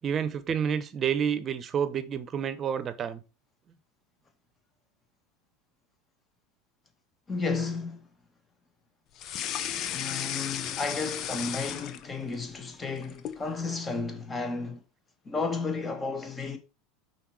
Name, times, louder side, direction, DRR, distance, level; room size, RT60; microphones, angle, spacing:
voice 1, 0.0-3.2, right 8 dB, 35° right, 0.9 m, -29 dB
voice 2, 7.3-8.1 9.9-14.8 15.3-16.6, left 4 dB, 20° left, 1.7 m, -33 dB
sound 1, 9.2-12.4 12.7-13.4, left 10 dB, 50° left, 0.8 m, -34 dB
5.6 x 4.5 x 4.8 m
hypercardioid pair, 100°, 0 cm